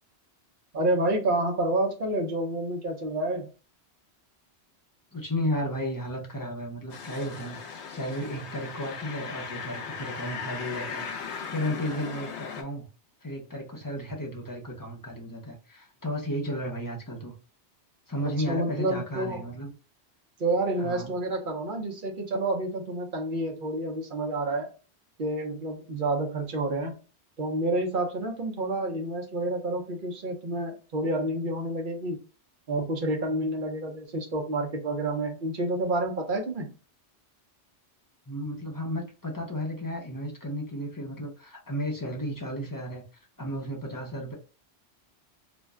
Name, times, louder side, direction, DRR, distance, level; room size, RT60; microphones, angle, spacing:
voice 1, 0.7-3.5 18.2-19.4 20.4-24.7 25.2-27.0 27.4-32.2 32.7-36.7, right 2 dB, 55° right, 2 dB, 0.7 m, -29 dB
voice 2, 5.1-12.9 13.2-17.3 18.1-19.7 20.8-21.1 38.3-43.0 43.4-44.3, equal, 25° left, -1 dB, 0.4 m, -33 dB
sound 1, 6.9-12.6, left 5 dB, 80° left, 0.9 m, -38 dB
2.5 x 2.1 x 3.5 m, 0.34 s
omnidirectional pair, 1.1 m